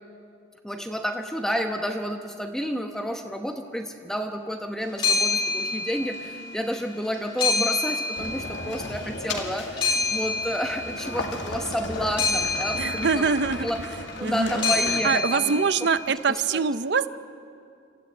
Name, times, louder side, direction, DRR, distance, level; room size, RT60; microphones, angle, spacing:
voice 1, 0.6-13.3 13.6-13.8 14.2-15.5 16.3-16.6, equal, 5° left, 4 dB, 1.0 m, -30 dB
sound 1, 4.8-6.5 6.8-9.1 9.5-16.0, left 3 dB, 25° left, 4.1 m, -28 dB
sound 2, 8.2-15.0, left 2 dB, 65° left, 2.1 m, -35 dB
voice 2, 12.7-13.7 14.2-17.1, right 5 dB, 60° right, 14 dB, 0.6 m, -24 dB
27.0 x 15.0 x 9.1 m, 2.4 s
head